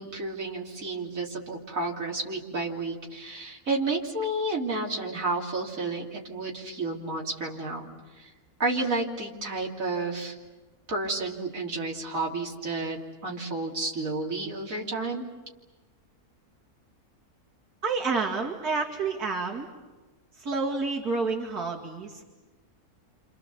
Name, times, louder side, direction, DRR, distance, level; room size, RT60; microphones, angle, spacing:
voice 1, 0.0-7.8 8.2-8.3 8.6-10.4 10.9-15.2, right 2 dB, 60° right, -2 dB, 3.6 m, -31 dB
voice 2, 17.8-19.7 20.4-22.2, right 4 dB, 85° right, -2 dB, 2.9 m, -29 dB
29.0 x 27.5 x 7.1 m, 1.2 s
omnidirectional pair, 1.6 m